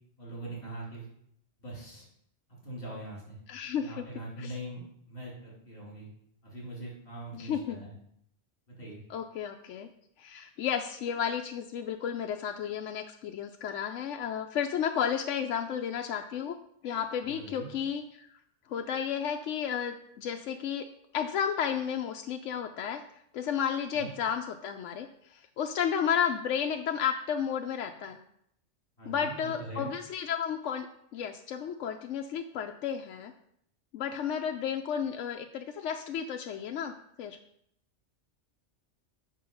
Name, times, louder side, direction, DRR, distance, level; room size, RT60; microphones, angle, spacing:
voice 1, 0.2-1.1 1.6-2.1 2.5-3.4 3.8-6.1 6.4-7.9 8.7-9.0 17.2-17.7 23.9-24.1 29.0-29.9, right 1 dB, 50° left, -4 dB, 3.4 m, -42 dB
voice 2, 3.5-4.0 4.4-4.5 7.3-7.8 9.1-9.9 10.2-16.6 16.8-18.4 18.7-20.9 21.1-23.0 23.3-28.2 29.1-33.3 33.9-36.9 37.2-37.4, left 8 dB, 80° left, 5 dB, 0.9 m, -32 dB
7.6 x 6.3 x 5.4 m, 0.72 s
omnidirectional pair, 1.2 m